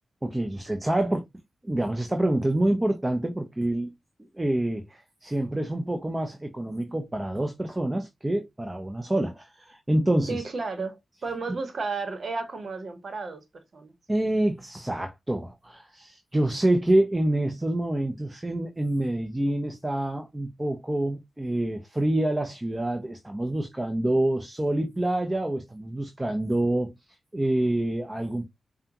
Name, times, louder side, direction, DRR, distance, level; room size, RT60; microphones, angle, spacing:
voice 1, 0.2-1.2 1.6-3.9 4.3-10.4 14.1-26.9 27.3-28.4, right 1 dB, 20° right, 0.9 m, -27 dB
voice 2, 10.3-13.9, right 4 dB, 60° right, 1.1 m, -33 dB
5.0 x 2.4 x 2.9 m
supercardioid pair, 40°, 0 cm